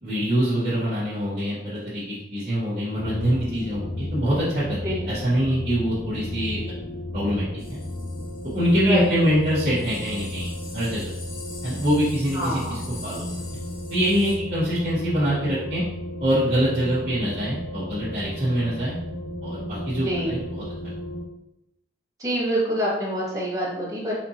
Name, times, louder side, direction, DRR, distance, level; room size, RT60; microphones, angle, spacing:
voice 1, 0.0-6.6 7.1-7.4 7.7-7.8 8.5-11.1 11.6-13.2 13.9-15.8 16.2-19.0 19.4-20.6, equal, 40° right, -11 dB, 1.1 m, -24 dB
sound 1, 3.0-21.2, left 1 dB, 85° left, 0.9 m, -34 dB
sound 2, 7.6-9.0 9.4-9.5 9.7-14.4, left 3 dB, 50° left, 0.9 m, -44 dB
voice 2, 12.3-12.8 20.0-20.4 22.2-24.2, equal, 20° right, -7 dB, 1.4 m, -26 dB
4.2 x 3.7 x 2.8 m, 0.86 s
head